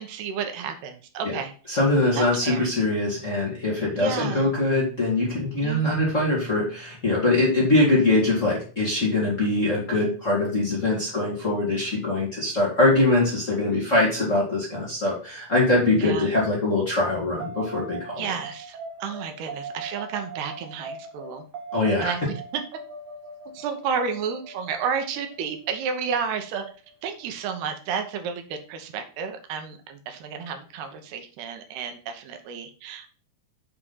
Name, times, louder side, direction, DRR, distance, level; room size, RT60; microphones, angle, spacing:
voice 1, 0.0-1.5 2.2-2.7 4.0-4.5 5.6-5.9 15.9-16.3 18.2-21.5 22.0-22.6 23.5-26.6 27.0-33.1, right 6 dB, 85° right, 6 dB, 3.2 m, -31 dB
voice 2, 1.7-18.3 21.7-22.1, left 2 dB, 25° left, -4 dB, 2.0 m, -23 dB
sound 1, 17.4-27.6, right 4 dB, 60° right, 2.1 m, -40 dB
7.5 x 5.0 x 5.6 m, 0.38 s
omnidirectional pair, 4.5 m